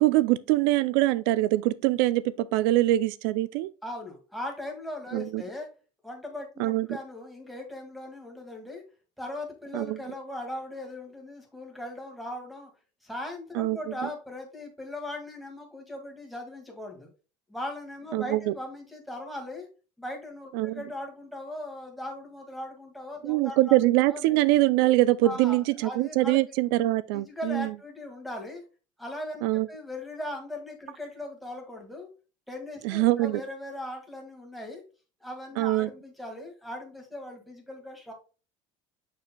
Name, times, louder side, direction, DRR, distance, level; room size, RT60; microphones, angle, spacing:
voice 1, 0.0-3.7 5.1-5.4 6.6-6.9 9.7-10.0 13.5-13.8 18.1-18.5 20.5-20.8 23.2-27.7 29.4-29.7 32.8-33.4 35.6-35.9, right 17 dB, 85° right, 0.4 m, -23 dB
voice 2, 3.8-5.7 6.0-8.8 9.2-12.7 13.0-17.1 17.5-19.7 20.0-23.8 24.1-24.4 25.2-26.4 27.1-28.6 29.0-32.1 32.5-34.8 35.2-38.1, left 1 dB, ahead, 2.1 m, -39 dB
6.8 x 6.6 x 2.3 m
cardioid pair, 150°, 12 cm